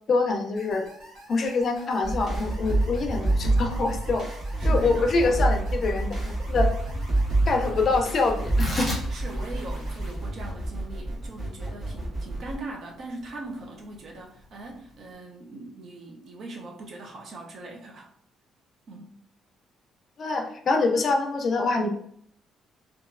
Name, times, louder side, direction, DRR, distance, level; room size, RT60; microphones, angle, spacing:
voice 1, 0.1-0.9 1.3-4.2 4.6-6.7 7.5-8.9 20.2-22.0, left 3 dB, 40° left, 4 dB, 0.4 m, -25 dB
sound 1, 0.6-10.2, right 1 dB, 75° right, 1.2 m, -48 dB
sound 2, 2.0-12.6, right 2 dB, 25° right, 1.4 m, -27 dB
voice 2, 4.6-5.4 9.1-18.1 18.9-19.2, right 2 dB, 45° right, 1 dB, 0.6 m, -40 dB
Tearing, 8.4-15.1, left 1 dB, 10° right, 1.0 m, -38 dB
3.0 x 2.3 x 2.4 m, 0.63 s
cardioid pair, 150°, 0 cm